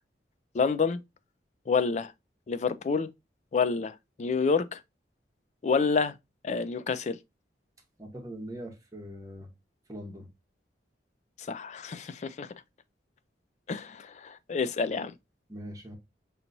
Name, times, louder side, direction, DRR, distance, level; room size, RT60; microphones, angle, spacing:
voice 1, 0.5-1.0 1.7-2.1 2.5-3.1 3.5-4.8 5.6-6.1 6.4-7.2 11.5-12.5 13.7-15.1, left 5 dB, 40° left, 0.3 m, -28 dB
voice 2, 8.0-9.5 9.9-10.3 15.5-15.9, equal, 20° right, 1.0 m, -41 dB
5.5 x 2.9 x 2.6 m
head